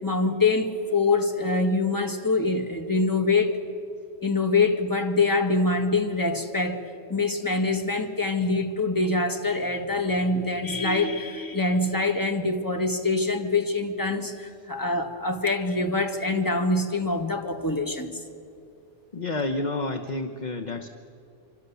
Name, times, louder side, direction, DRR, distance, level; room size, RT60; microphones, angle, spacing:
voice 1, 0.0-3.6 4.2-6.8 7.1-18.1, left 3 dB, 15° left, 5 dB, 1.8 m, -24 dB
voice 2, 19.1-20.9, left 2 dB, 40° left, 7 dB, 1.1 m, -29 dB
26.0 x 25.0 x 6.9 m, 2.6 s
omnidirectional pair, 1.2 m